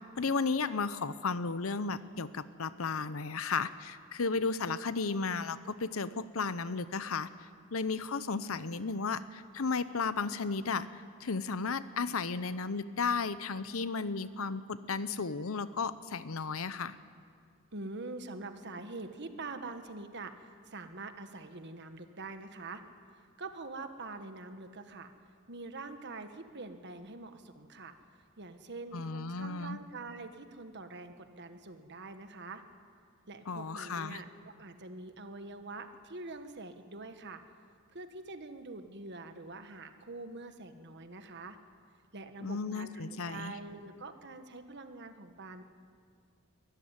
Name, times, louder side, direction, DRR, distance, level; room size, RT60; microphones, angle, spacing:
voice 1, 0.2-7.3 7.7-10.9 11.2-17.0 28.9-29.8 33.5-34.2 42.4-43.6, left 4 dB, 75° left, 14 dB, 0.8 m, -34 dB
voice 2, 17.7-22.8 23.4-25.1 25.5-27.9 28.4-32.6 33.3-37.4 37.9-41.6 42.1-45.6, right 3 dB, 55° right, 8 dB, 1.5 m, -45 dB
23.0 x 14.0 x 9.7 m, 2.2 s
head